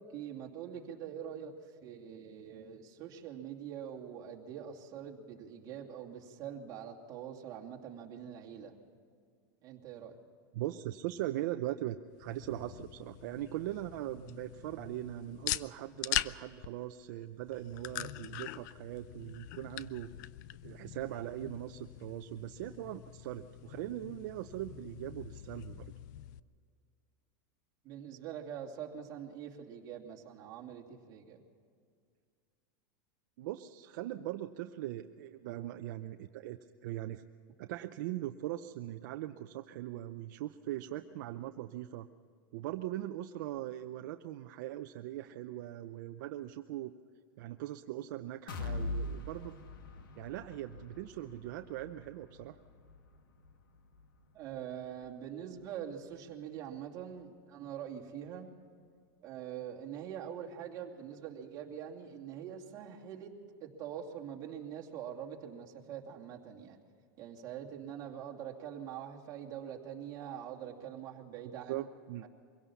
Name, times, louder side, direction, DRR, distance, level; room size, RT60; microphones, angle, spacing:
voice 1, 0.0-8.7 9.6-10.2 27.8-31.4 54.3-58.5 59.2-63.3 63.6-66.8 67.2-71.9, right 9 dB, 35° right, -1 dB, 2.6 m, -44 dB
voice 2, 10.5-20.1 20.6-25.9 33.4-37.2 37.6-42.1 42.5-46.9 47.4-49.5 50.2-52.6 71.7-72.3, right 14 dB, 60° right, 7 dB, 0.7 m, -40 dB
sound 1, 12.1-26.4, left 14 dB, 60° left, 0.6 m, -43 dB
sound 2, 48.5-56.3 56.7-56.8 57.2-57.3, left 2 dB, 80° left, 2.0 m, -44 dB
23.5 x 17.0 x 7.1 m, 2.1 s
supercardioid pair, 155°, 11 cm